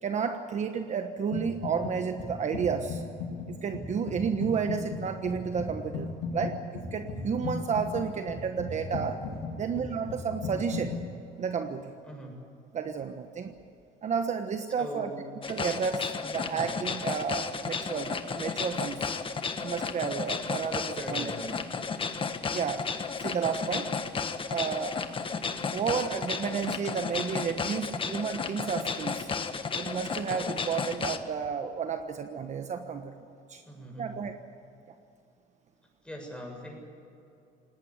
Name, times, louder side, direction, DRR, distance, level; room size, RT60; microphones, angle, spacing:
voice 1, 0.0-3.0 3.5-9.2 9.6-10.9 11.4-11.9 12.7-13.5 14.0-15.1 15.5-19.1 19.6-21.3 22.5-22.9 23.2-23.9 24.5-25.0 25.7-29.3 29.7-33.6 34.0-34.4, right 6 dB, 45° right, 7 dB, 1.3 m, -32 dB
sound 1, 1.3-1.9 2.2-11.1, left 4 dB, 80° left, 6.3 m, -37 dB
voice 2, 12.0-12.4 14.8-15.2 16.2-16.7 21.0-21.6 33.6-34.2 36.0-36.8, equal, 5° left, 1 dB, 7.4 m, -41 dB
sound 2, 15.4-31.2, left 5 dB, 30° left, 1.5 m, -33 dB
19.5 x 18.5 x 9.6 m, 2.7 s
cardioid pair, 110°, 17 cm